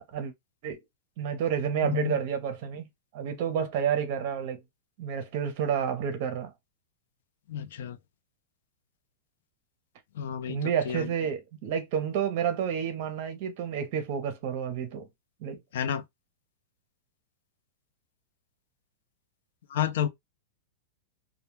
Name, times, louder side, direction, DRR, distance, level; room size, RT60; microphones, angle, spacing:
voice 1, 1.2-4.6 5.0-6.5 10.5-15.1 15.4-15.6, right 8 dB, 45° right, 0.7 m, -30 dB
voice 2, 1.8-2.2 7.5-8.0 10.1-11.1 15.7-16.0 19.7-20.1, left 9 dB, 70° left, 0.4 m, -30 dB
2.2 x 2.1 x 3.0 m
supercardioid pair, 165°, 0 cm